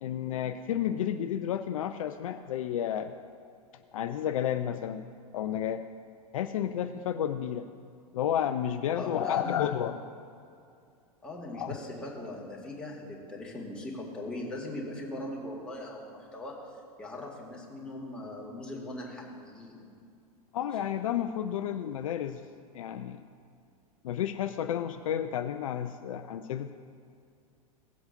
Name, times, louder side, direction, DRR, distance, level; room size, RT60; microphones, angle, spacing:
voice 1, 0.0-3.1 3.9-5.0 5.3-5.8 6.3-7.7 8.1-10.0 11.5-11.7 20.5-22.4 22.7-23.2 24.0-26.7, left 10 dB, 60° left, 8 dB, 0.5 m, -31 dB
voice 2, 8.9-9.7 11.2-16.7 17.0-19.9, left 1 dB, 5° left, -4 dB, 2.1 m, -40 dB
17.5 x 7.9 x 2.6 m, 2.5 s
figure-of-eight pair, 90°, 20 cm